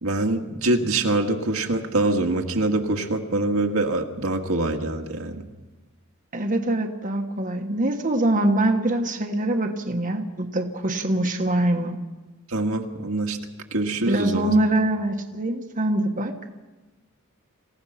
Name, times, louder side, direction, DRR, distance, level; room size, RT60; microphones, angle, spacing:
voice 1, 0.0-5.4 12.5-13.4 13.7-14.5, right 2 dB, 70° right, 3 dB, 1.9 m, -24 dB
voice 2, 6.3-12.0 14.0-16.3, right 1 dB, 40° right, 3 dB, 1.4 m, -23 dB
27.5 x 16.5 x 5.8 m, 1.2 s
head